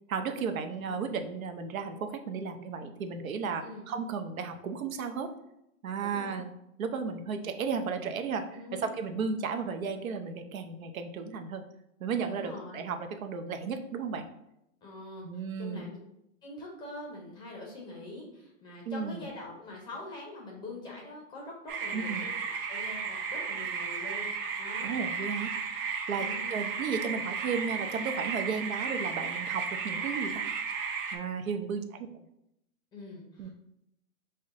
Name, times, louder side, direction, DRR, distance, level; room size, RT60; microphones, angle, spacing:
voice 1, 0.1-5.3 5.8-6.5 6.8-11.6 12.0-14.3 15.2-15.9 18.9-19.3 21.9-22.3 24.8-25.5 26.1-30.5 31.1-32.2 33.4-33.5, right 5 dB, 85° right, 7 dB, 0.7 m, -34 dB
voice 2, 6.0-6.4 8.5-8.9 12.3-12.9 14.8-16.0 16.4-25.0 26.1-26.5 32.9-33.5, left 2 dB, 10° left, -1 dB, 0.5 m, -44 dB
sound 1, 21.7-31.2, right 5 dB, 40° right, 0.7 m, -34 dB
5.5 x 2.2 x 3.7 m, 0.82 s
hypercardioid pair, 145°, 40 cm